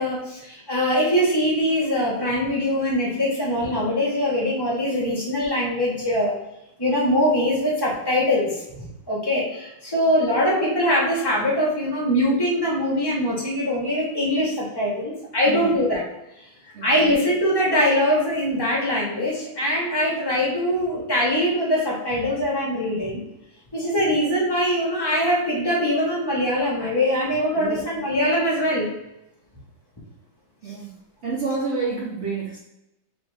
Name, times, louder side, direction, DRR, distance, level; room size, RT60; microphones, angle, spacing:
voice 1, 0.0-6.3 6.8-8.6 9.1-16.0 16.8-23.2 23.7-28.9, equal, 20° left, -4 dB, 0.6 m, -22 dB
voice 2, 16.7-17.1 27.6-27.9 30.6-30.9 31.2-32.6, right 4 dB, 75° right, -4 dB, 0.6 m, -29 dB
4.3 x 2.8 x 3.3 m, 0.87 s
omnidirectional pair, 2.1 m